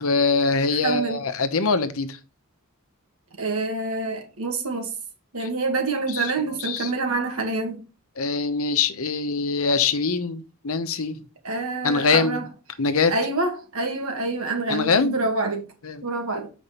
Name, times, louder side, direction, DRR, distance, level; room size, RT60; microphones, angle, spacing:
voice 1, 0.0-2.2 5.4-5.5 6.1-6.9 8.2-11.2 11.8-12.4 12.8-13.2 14.7-15.2 15.8-16.1, left 4 dB, 75° left, 0.9 m, -23 dB
voice 2, 0.8-1.2 3.4-4.9 5.3-7.8 11.4-12.4 13.1-15.6 16.0-16.5, right 3 dB, 75° right, 2.0 m, -27 dB
6.9 x 5.1 x 4.3 m
head